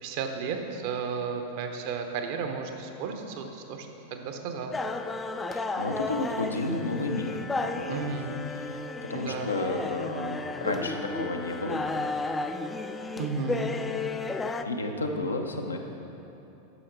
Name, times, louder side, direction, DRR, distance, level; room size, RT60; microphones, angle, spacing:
voice 1, 0.0-4.8 7.9-8.4 9.1-9.5 13.1-13.7, right 5 dB, 50° right, 5 dB, 0.8 m, -33 dB
sound 1, 4.7-14.6, left 3 dB, 10° left, 0.4 m, -33 dB
voice 2, 5.5-8.1 8.5-11.8 14.6-15.8, left 2 dB, 80° left, 3 dB, 0.7 m, -32 dB
9.7 x 6.4 x 4.4 m, 3.0 s
figure-of-eight pair, 90°, 0 cm